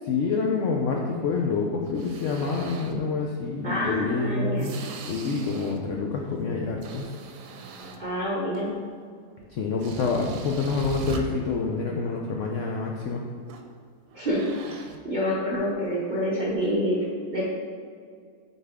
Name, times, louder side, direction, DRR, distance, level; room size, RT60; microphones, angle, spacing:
voice 1, 0.1-7.1 9.5-13.2, left 4 dB, 70° left, 0 dB, 0.7 m, -27 dB
sound 1, 1.8-3.1 3.6-6.0 6.3-8.3 9.4-9.5 9.8-11.2 13.5-13.7 14.1-15.0, right 4 dB, 75° right, 1.1 m, -40 dB
voice 2, 3.6-4.7 8.0-8.7 14.1-14.4 14.7-14.8 15.0-17.0 17.3-17.5, equal, 40° right, -5 dB, 0.7 m, -27 dB
7.1 x 4.4 x 3.5 m, 2.1 s
omnidirectional pair, 1.8 m